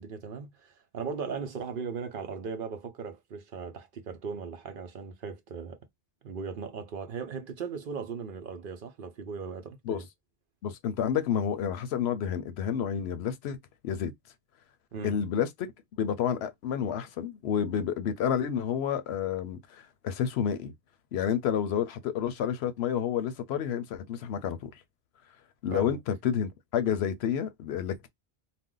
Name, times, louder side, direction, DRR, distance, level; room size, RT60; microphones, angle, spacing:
voice 1, 0.0-5.8 6.2-10.1 14.9-15.2 25.7-26.0, right 5 dB, 60° right, 0.8 m, -38 dB
voice 2, 10.6-13.6 13.8-14.1 15.0-15.7 16.0-20.7 21.1-24.7 25.6-28.1, left 8 dB, 90° left, 0.8 m, -30 dB
2.5 x 2.1 x 3.7 m
omnidirectional pair, 1.0 m